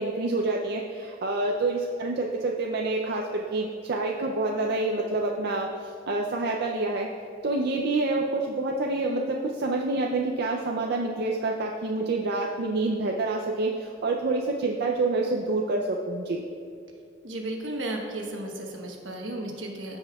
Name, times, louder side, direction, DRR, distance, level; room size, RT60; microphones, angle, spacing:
voice 1, 0.0-7.1 7.4-16.4, right 2 dB, 60° right, 0 dB, 0.5 m, -27 dB
voice 2, 17.2-20.0, right 1 dB, 80° right, 1 dB, 1.1 m, -34 dB
14.5 x 5.4 x 2.3 m, 2.7 s
head